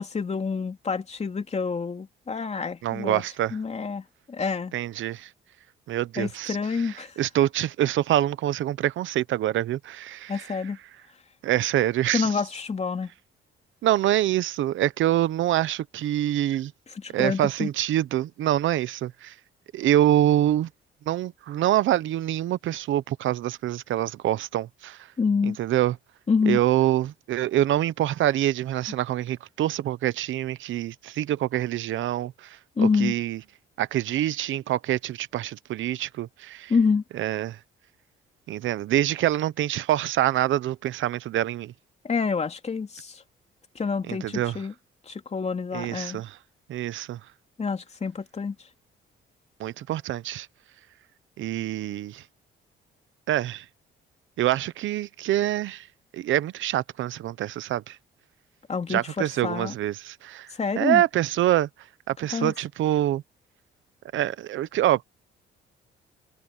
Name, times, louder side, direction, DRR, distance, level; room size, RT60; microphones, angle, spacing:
voice 1, 0.0-3.2 3.5-4.7 6.2-7.2 10.3-10.8 12.1-13.1 16.9-17.7 25.2-25.6 26.3-26.6 32.8-33.1 36.7-37.0 42.0-43.2 43.7-44.7 45.1-46.2 47.6-48.6 58.7-59.7 60.5-61.0 62.3-62.5, left 5 dB, 35° left, 3.0 m, -27 dB
voice 2, 2.8-3.6 4.7-5.3 5.9-6.6 6.8-10.5 11.4-12.4 13.8-16.7 17.1-19.3 19.7-20.7 21.1-25.1 25.6-25.9 26.5-33.4 33.8-36.7 37.1-37.6 38.5-41.7 44.1-44.6 45.7-46.4 46.7-47.2 49.6-50.5 51.4-52.2 53.3-53.6 54.4-55.9 56.1-58.0 58.9-61.7 62.1-63.2 64.1-65.0, right 13 dB, 75° right, 1.0 m, -25 dB
cardioid pair, 90°, 20 cm